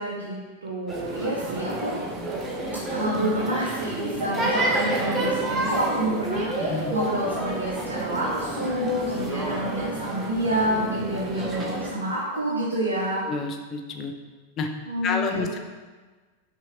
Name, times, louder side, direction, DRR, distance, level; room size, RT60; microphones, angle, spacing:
voice 1, 0.0-2.0 2.9-13.2 14.9-15.6, right 1 dB, 75° right, -6 dB, 0.7 m, -28 dB
sound 1, 0.9-11.9, right 2 dB, 20° right, 0.7 m, -29 dB
voice 2, 6.6-7.0 13.3-14.1 14.6-14.7 15.0-15.6, left 4 dB, 30° left, 5 dB, 0.4 m, -29 dB
5.5 x 2.8 x 2.8 m, 1.3 s
figure-of-eight pair, 90°, 0 cm